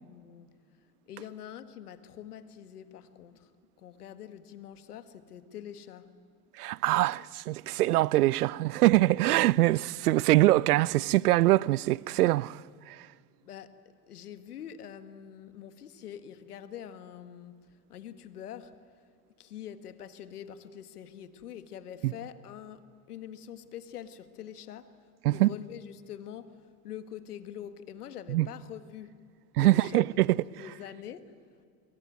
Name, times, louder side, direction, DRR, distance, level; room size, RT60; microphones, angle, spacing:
voice 1, 0.0-0.5 1.1-3.5 3.8-6.1 13.4-13.7 14.1-18.8 19.4-25.0 25.3-29.2 29.6-30.1 30.3-31.3, left 10 dB, 85° left, 1.7 m, -45 dB
voice 2, 6.6-12.6 12.9-13.0 22.0-22.1 25.2-25.5 28.3-28.5 29.6-30.3 30.5-30.6, right 17 dB, 85° right, 0.6 m, -23 dB
27.5 x 22.5 x 9.2 m
hypercardioid pair, 80°, 44 cm